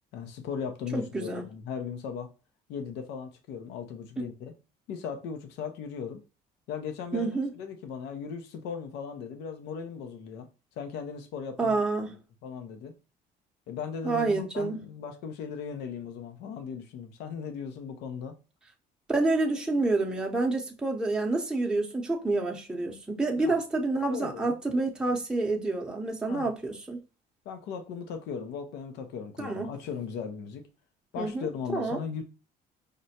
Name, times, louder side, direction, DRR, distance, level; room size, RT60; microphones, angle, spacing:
voice 1, 0.1-2.3 2.7-4.5 4.9-6.2 6.7-10.5 10.8-11.8 12.4-12.9 13.7-18.3 23.4-23.6 24.1-24.6 26.3-26.5 27.5-30.6 31.1-32.2, left 6 dB, 85° left, 0.6 m, -37 dB
voice 2, 0.9-1.4 7.1-7.5 11.6-12.1 14.0-14.8 19.1-27.0 29.4-29.7 31.2-32.0, right 2 dB, 5° right, 0.6 m, -28 dB
5.0 x 2.1 x 2.7 m
cardioid pair, 110°, 17 cm